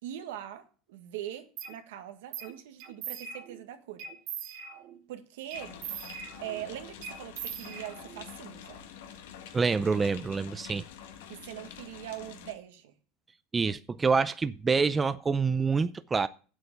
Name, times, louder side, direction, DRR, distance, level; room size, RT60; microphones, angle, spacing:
voice 1, 0.0-4.0 5.1-5.8 6.4-8.8 11.3-12.9, right 12 dB, 85° right, 1.6 m, -42 dB
sound 1, 1.6-1.7 2.3-2.5 2.8-3.6 4.0-5.0 5.5-6.6 7.0-8.3, right 8 dB, 55° right, 2.6 m, -41 dB
sound 2, 5.5-12.5, left 9 dB, 85° left, 1.7 m, -47 dB
voice 2, 9.5-10.8 13.5-16.3, right 4 dB, 15° right, 0.5 m, -26 dB
8.1 x 7.7 x 6.7 m
supercardioid pair, 135°, 0 cm